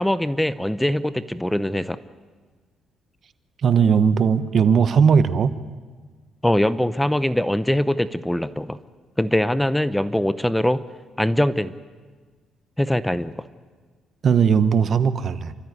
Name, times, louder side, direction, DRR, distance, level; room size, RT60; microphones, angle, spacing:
voice 1, 0.0-2.0 6.4-8.8 9.2-10.8 11.2-11.7 12.8-13.4, left 1 dB, 5° left, 14 dB, 0.8 m, -22 dB
voice 2, 3.6-5.6 14.2-15.5, right 6 dB, 55° right, 13 dB, 1.1 m, -18 dB
29.0 x 13.5 x 9.5 m, 1.5 s
cardioid pair, 90°, 0 cm